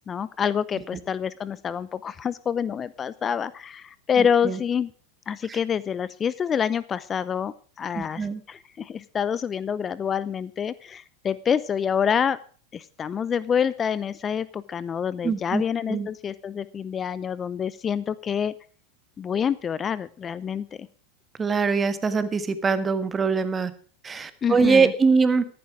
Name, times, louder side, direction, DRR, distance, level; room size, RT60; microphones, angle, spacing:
voice 1, 0.1-4.9 5.3-12.4 12.7-18.5 19.2-20.9 24.4-24.9, left 7 dB, 30° left, 18 dB, 0.6 m, -27 dB
voice 2, 4.2-4.6 5.5-5.6 7.9-8.4 15.2-15.6 15.9-16.1 21.4-23.7 24.0-25.4, right 5 dB, 20° right, 13 dB, 1.5 m, -23 dB
14.0 x 11.5 x 4.8 m, 0.41 s
hypercardioid pair, 90°, 0 cm